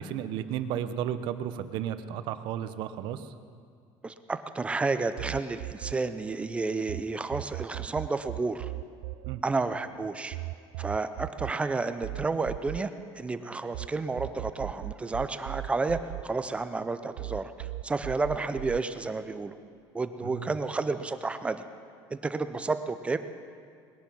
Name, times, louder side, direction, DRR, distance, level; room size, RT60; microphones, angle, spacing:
voice 1, 0.0-3.3 9.3-9.4 20.2-20.5, right 10 dB, 60° right, 11 dB, 0.8 m, -33 dB
voice 2, 4.0-8.7 9.4-10.4 10.8-12.9 13.2-19.6 19.9-21.6 22.1-23.2, right 3 dB, 15° right, 10 dB, 0.5 m, -31 dB
sound 1, 5.2-7.0 7.3-13.9 14.2-16.9 17.2-18.8, right 20 dB, 80° right, 0.4 m, -38 dB
20.0 x 10.5 x 6.2 m, 2.2 s
cardioid pair, 160°, 9 cm